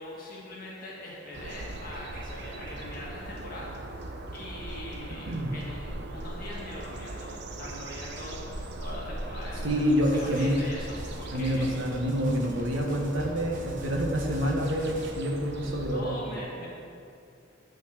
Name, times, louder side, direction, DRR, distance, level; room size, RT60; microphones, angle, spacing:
voice 1, 0.0-11.7 15.8-16.7, left 1 dB, 45° left, -5 dB, 1.6 m, -42 dB
sound 1, 1.3-16.0, right 1 dB, 60° right, 0.8 m, -39 dB
voice 2, 9.6-10.5 11.3-16.1, equal, 75° right, 0 dB, 1.4 m, -27 dB
sound 2, 10.0-15.1, right 1 dB, 40° right, 1.1 m, -47 dB
12.0 x 4.3 x 6.6 m, 2.5 s
head